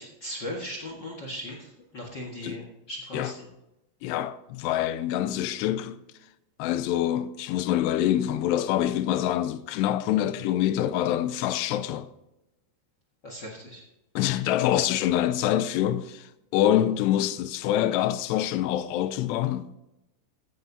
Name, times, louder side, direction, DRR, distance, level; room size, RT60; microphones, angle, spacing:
voice 1, 0.0-3.4 13.2-13.8, equal, 60° left, 1.1 m, -38 dB
voice 2, 4.0-6.0 6.6-12.1 14.2-19.7, left 12 dB, 90° left, 2.7 m, -25 dB
14.5 x 12.0 x 2.7 m
omnidirectional pair, 4.8 m